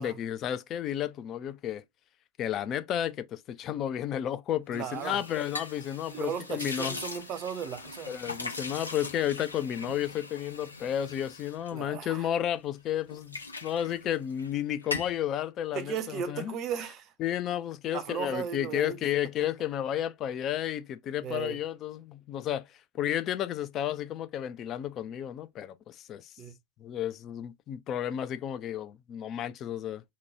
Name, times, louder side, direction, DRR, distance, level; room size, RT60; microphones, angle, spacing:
voice 1, 0.0-1.8 2.4-7.0 8.1-16.6 17.2-22.7 22.9-26.3 26.8-30.0, left 10 dB, 30° left, 0.4 m, -32 dB
sound 1, 4.7-12.5 12.9-14.5 14.8-15.2, left 3 dB, 80° left, 0.7 m, -41 dB
voice 2, 4.7-5.2 6.1-8.1 11.7-12.3 15.7-17.1 17.9-19.0 21.2-21.6 26.4-26.6, right 8 dB, 35° right, 0.5 m, -36 dB
3.0 x 2.2 x 3.9 m
figure-of-eight pair, 90°, 0 cm